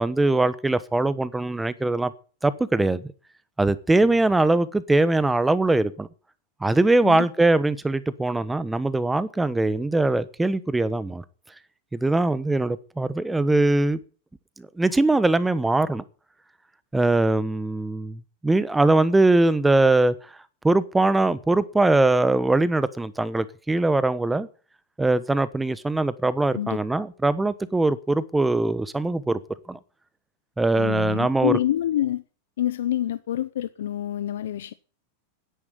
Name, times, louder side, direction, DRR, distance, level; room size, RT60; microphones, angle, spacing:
voice 1, 0.0-2.1 2.4-3.1 3.6-6.1 6.6-11.2 11.9-14.0 14.6-16.0 16.9-20.1 20.6-24.5 25.0-29.4 29.7-29.8 30.6-31.6, right 2 dB, 10° right, 1.1 m, -21 dB
voice 2, 30.8-32.2 32.6-34.7, left 12 dB, 80° left, 0.6 m, -27 dB
10.5 x 8.6 x 9.3 m
supercardioid pair, 130°, 0 cm